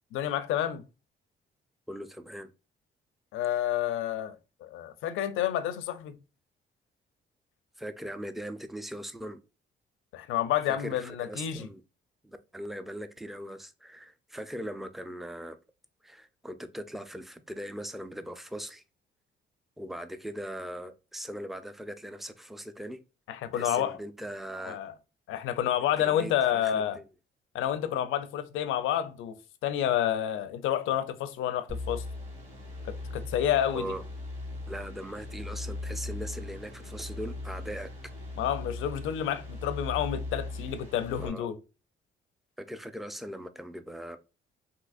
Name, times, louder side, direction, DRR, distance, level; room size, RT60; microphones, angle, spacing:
voice 1, 0.1-0.8 3.3-4.4 4.6-6.2 10.1-11.7 23.3-24.0 24.6-24.9 25.3-27.0 27.5-32.0 32.9-33.9 38.4-41.6, left 10 dB, 85° left, 0.5 m, -29 dB
voice 2, 1.9-2.5 7.8-9.4 10.7-11.8 12.2-15.6 16.0-18.8 19.8-23.0 23.5-24.8 26.0-27.0 33.7-34.0 34.7-37.9 41.2-41.5 42.6-44.2, equal, ahead, 0.4 m, -40 dB
sound 1, 31.7-41.3, left 2 dB, 35° right, 2.0 m, -39 dB
3.6 x 2.8 x 2.4 m
cardioid pair, 90°, 20 cm